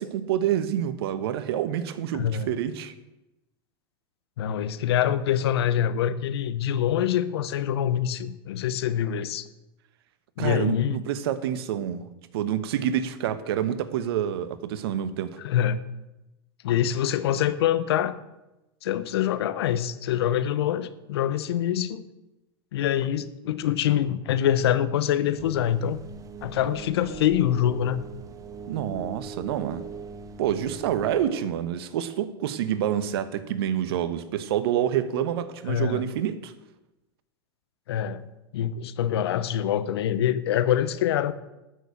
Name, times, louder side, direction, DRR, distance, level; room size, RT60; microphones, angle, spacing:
voice 1, 0.0-2.9 10.4-12.1 12.3-15.4 28.7-29.8 30.4-36.5, right 10 dB, 70° right, 13 dB, 1.2 m, -27 dB
voice 2, 2.1-2.5 4.4-9.4 10.4-11.0 15.4-15.8 16.6-18.1 18.8-22.0 22.7-26.0 26.4-28.0 35.7-36.1 37.9-38.3 38.5-41.3, left 10 dB, 75° left, 14 dB, 1.0 m, -25 dB
sound 1, 25.3-31.3, right 4 dB, 25° right, 1.7 m, -40 dB
12.5 x 6.8 x 8.1 m, 0.97 s
hypercardioid pair, 100°, 13 cm